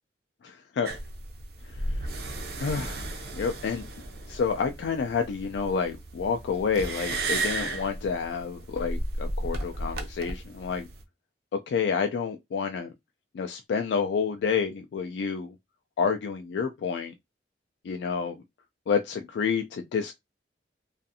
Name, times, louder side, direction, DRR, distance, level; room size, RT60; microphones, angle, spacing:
voice 1, 0.4-0.9 1.7-2.1 2.6-3.8 4.3-10.9 11.7-12.9 13.3-15.5 16.0-17.1 17.8-18.4 18.9-20.1, left 6 dB, 75° left, 0.3 m, -29 dB
sound 1, 0.8-11.0, right 2 dB, 60° right, 0.5 m, -34 dB
2.4 x 2.4 x 2.6 m
head